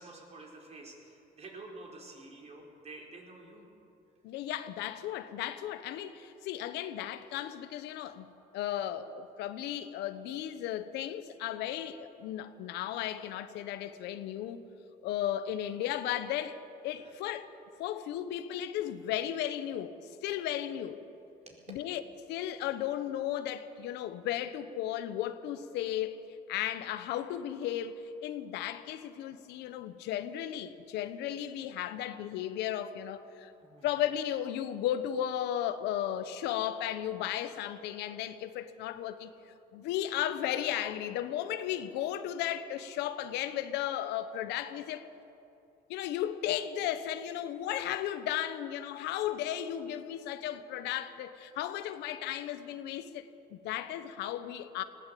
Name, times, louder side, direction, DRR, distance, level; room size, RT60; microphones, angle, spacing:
voice 1, 0.0-3.7 16.9-17.2 21.5-21.6 33.6-33.9, right 2 dB, 40° right, 4.7 m, -49 dB
voice 2, 4.2-14.6 15.0-16.6 16.8-17.5 17.8-20.0 20.2-21.0 21.7-22.0 22.3-33.5 33.8-39.3 39.7-45.0 45.9-54.8, left 11 dB, 85° left, 1.1 m, -35 dB
20.0 x 16.5 x 8.5 m
cardioid pair, 110°, 17 cm